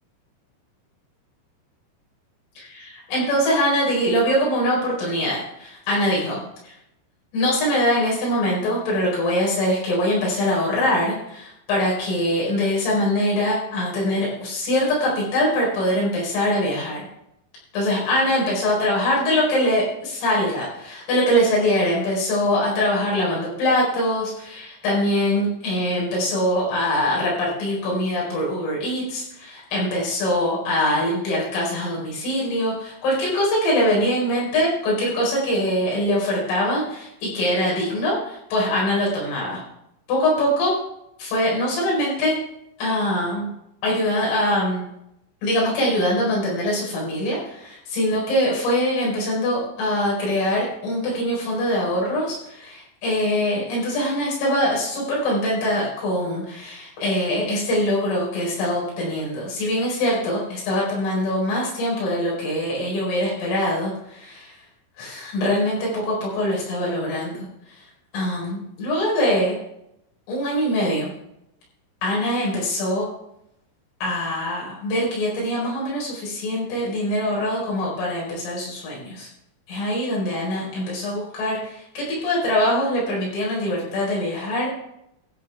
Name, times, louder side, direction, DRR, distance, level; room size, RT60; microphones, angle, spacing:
voice 1, 2.6-6.7 7.3-17.0 17.7-39.6 40.1-40.7 41.2-42.4 42.8-43.5 43.8-44.8 45.4-64.6 65.0-67.5 68.1-69.6 70.3-71.1 72.0-73.1 74.0-79.3 79.7-84.7, left 1 dB, 75° left, -3 dB, 7.0 m, -23 dB
17.5 x 13.5 x 2.3 m, 0.82 s
omnidirectional pair, 5.7 m